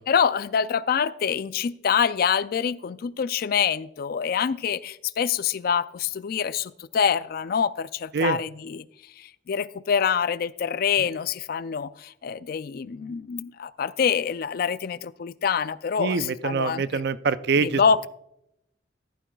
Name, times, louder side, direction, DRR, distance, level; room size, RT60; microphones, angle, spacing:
voice 1, 0.0-8.9 9.2-17.0 17.6-18.1, left 7 dB, 55° left, 16 dB, 0.4 m, -26 dB
voice 2, 16.0-18.1, right 5 dB, 60° right, 14 dB, 0.5 m, -25 dB
13.5 x 11.5 x 2.3 m, 0.80 s
head